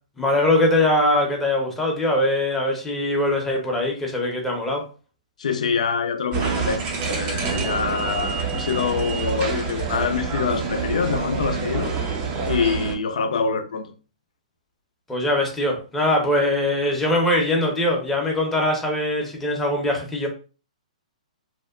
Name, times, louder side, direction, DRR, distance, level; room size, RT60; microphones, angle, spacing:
voice 1, 0.2-4.8 15.1-20.3, left 1 dB, 5° left, 0.7 m, -22 dB
voice 2, 5.4-11.9 12.5-13.9, left 6 dB, 65° left, 0.4 m, -25 dB
sound 1, 6.3-13.0, right 5 dB, 30° right, 0.5 m, -27 dB
2.7 x 2.1 x 2.3 m
hypercardioid pair, 125°, 4 cm